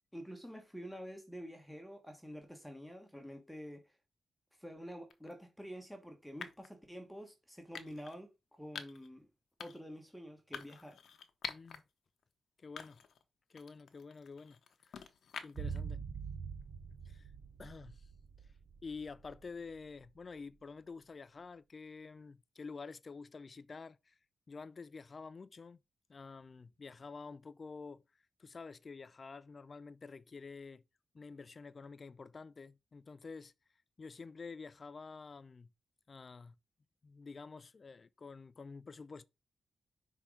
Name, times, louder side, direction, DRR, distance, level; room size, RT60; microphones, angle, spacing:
voice 1, 0.1-3.9 4.6-8.3 8.6-9.3 9.6-11.0, equal, ahead, 1.2 m, -48 dB
sound 1, 5.1-5.3 6.4-6.7 7.7-8.2 8.8-9.1 9.6-9.9 10.5-11.8 12.2-12.3 12.8-13.2 13.6-15.8, left 7 dB, 75° left, 0.9 m, -47 dB
voice 2, 11.5-11.8 12.6-13.0 13.5-14.6 14.8-15.1 15.4-16.0 17.1-17.3 17.6-18.1 18.8-24.1 24.5-25.8 26.1-28.0 28.4-30.8 31.1-33.5 34.0-35.7 36.1-36.5 37.0-39.2, left 4 dB, 45° left, 0.4 m, -49 dB
sound 2, 15.6-19.8 20.0-20.1, right 6 dB, 65° right, 0.6 m, -44 dB
5.7 x 3.6 x 4.8 m
cardioid pair, 80°, 0 cm